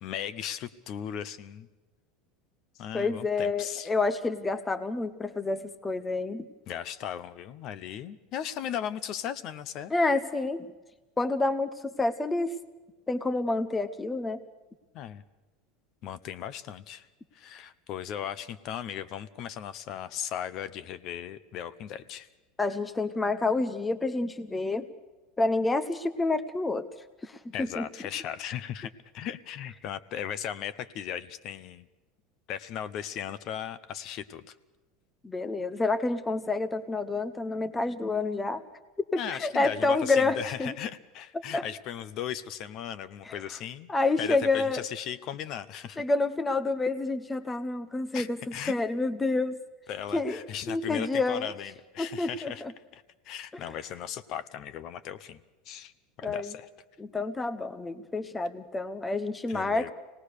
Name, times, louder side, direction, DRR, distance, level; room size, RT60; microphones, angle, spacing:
voice 1, 0.0-1.7 2.8-3.9 6.7-9.9 14.9-15.2 16.0-17.1 17.3-22.3 27.5-31.9 32.5-34.6 39.2-43.9 44.2-46.0 48.1-48.7 49.9-52.6 52.9-55.4 55.7-55.9 56.2-56.7 59.5-59.9, left 9 dB, 40° left, 14 dB, 0.8 m, -37 dB
voice 2, 2.9-6.5 9.9-10.7 11.2-12.6 13.1-14.4 22.6-24.9 25.4-26.9 27.2-27.9 35.2-38.6 39.1-40.7 41.5-41.7 43.3-43.4 43.9-44.8 46.0-49.6 50.1-50.4 50.7-51.5 52.0-52.7 53.5-53.6 56.2-56.5 57.0-59.9, left 3 dB, 10° left, 10 dB, 0.8 m, -28 dB
25.5 x 19.0 x 6.7 m, 1.2 s
supercardioid pair, 170°, 0 cm